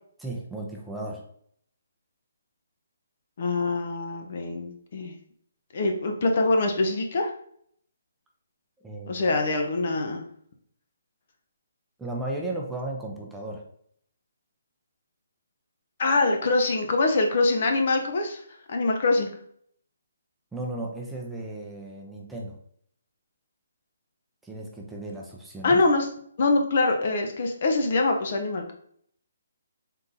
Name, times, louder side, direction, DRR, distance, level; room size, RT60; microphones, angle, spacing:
voice 1, 0.2-1.2 8.8-9.3 12.0-13.6 20.5-22.6 24.4-25.8, right 2 dB, 5° right, -2 dB, 0.6 m, -35 dB
voice 2, 3.4-5.1 5.7-7.3 9.1-10.2 16.0-18.4 18.7-19.3 25.6-26.1 26.4-28.7, left 3 dB, 55° left, 3 dB, 0.7 m, -24 dB
3.8 x 2.7 x 3.9 m, 0.64 s
hypercardioid pair, 150°, 0 cm